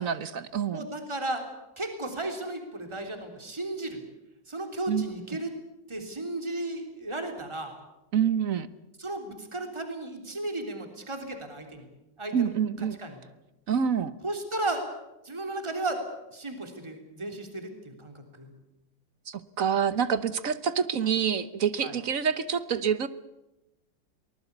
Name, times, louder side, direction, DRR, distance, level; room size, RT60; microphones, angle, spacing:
voice 1, 0.0-0.9 4.9-5.1 8.1-8.7 12.3-13.0 13.7-14.1 19.3-23.1, right 7 dB, 50° right, 14 dB, 1.3 m, -27 dB
voice 2, 0.7-1.4 1.8-4.0 4.5-5.5 5.9-7.7 9.0-11.9 12.2-12.5 13.0-13.2 14.2-14.8 15.2-16.0 16.3-18.5 21.8-21.9, right 2 dB, 15° right, 5 dB, 3.4 m, -34 dB
23.5 x 20.0 x 8.2 m, 0.94 s
omnidirectional pair, 2.0 m